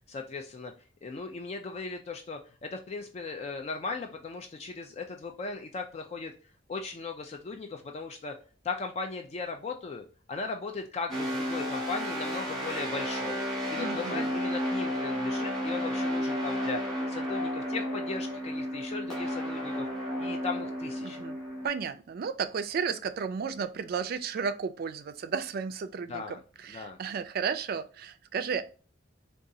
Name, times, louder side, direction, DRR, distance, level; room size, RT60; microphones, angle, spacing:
voice 1, 0.1-0.7 1.0-6.3 6.7-8.3 8.6-13.4 13.7-16.8 17.1-19.9 20.2-21.2 26.1-26.4 26.7-27.0, left 4 dB, 35° left, 0.3 m, -37 dB
sound 1, 11.1-21.7, equal, ahead, 1.5 m, -32 dB
voice 2, 13.7-14.3 21.0-21.4 21.6-26.4 26.6-28.6, right 6 dB, 50° right, 0.3 m, -33 dB
3.9 x 2.3 x 2.6 m
head